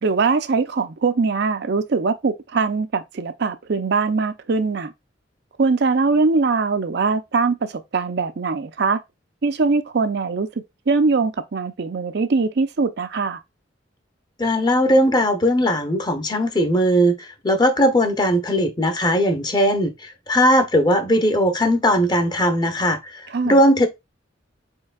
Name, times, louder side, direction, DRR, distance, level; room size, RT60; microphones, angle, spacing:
voice 1, 0.0-4.9 5.6-9.0 9.4-10.5 10.9-13.4 23.3-23.6, right 4 dB, 60° right, 0.5 m, -21 dB
voice 2, 14.4-23.9, equal, 25° left, 0.8 m, -19 dB
4.5 x 4.3 x 2.3 m
head